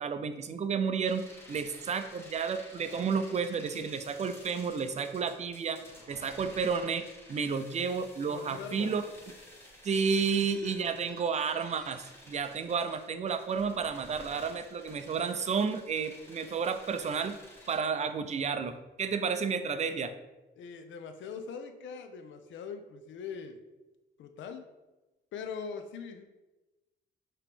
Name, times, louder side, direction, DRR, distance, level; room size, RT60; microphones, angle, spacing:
voice 1, 0.0-5.8 6.1-9.0 9.8-17.4 17.7-20.1, right 5 dB, 35° right, 10 dB, 0.4 m, -31 dB
sound 1, 1.0-17.8, left 1 dB, 10° left, 1.4 m, -52 dB
voice 2, 8.3-8.9 10.6-10.9 20.6-23.6 24.2-24.6 25.3-26.2, left 6 dB, 70° left, 7 dB, 0.6 m, -42 dB
4.9 x 3.0 x 3.3 m, 1.1 s
cardioid pair, 90°, 20 cm